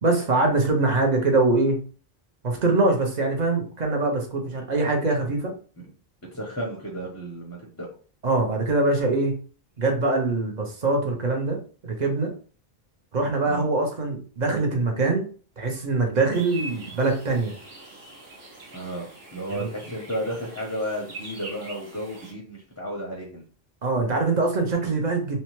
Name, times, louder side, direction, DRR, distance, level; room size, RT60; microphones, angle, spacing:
voice 1, 0.0-1.8 2.4-5.5 8.2-9.4 9.8-11.6 11.8-12.3 13.1-15.3 15.6-17.5 19.5-19.7 23.8-25.4, right 3 dB, 50° right, 2 dB, 0.7 m, -23 dB
voice 2, 6.3-7.9 13.4-13.7 18.7-23.4, equal, 20° left, -1 dB, 0.5 m, -33 dB
sound 1, 16.3-22.3, right 2 dB, 80° right, 1.1 m, -43 dB
2.7 x 2.1 x 2.9 m, 0.39 s
omnidirectional pair, 1.0 m